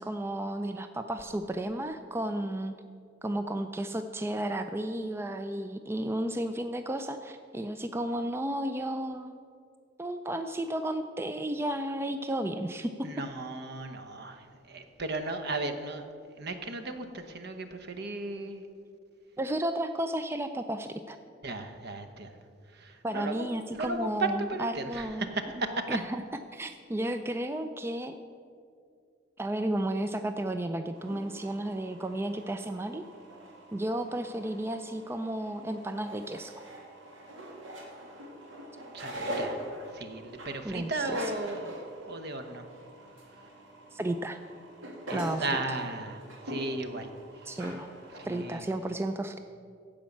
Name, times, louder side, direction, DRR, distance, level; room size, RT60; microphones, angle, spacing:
voice 1, 0.0-2.7 3.2-9.3 10.0-12.9 19.4-21.2 23.0-25.3 25.9-26.2 26.5-28.1 29.4-33.0 33.7-36.6 40.6-41.2 43.9-44.4 45.1-45.8 47.5-47.9 48.2-49.4, right 1 dB, 15° right, 8 dB, 0.3 m, -33 dB
voice 2, 13.0-16.1 16.3-18.6 21.4-22.3 22.7-26.0 38.9-39.6 39.9-42.7 45.1-47.6 48.2-48.7, right 2 dB, 55° right, 8 dB, 1.0 m, -36 dB
sound 1, 30.9-48.5, right 1 dB, 80° right, 2.2 m, -43 dB
15.5 x 5.3 x 7.2 m, 2.2 s
head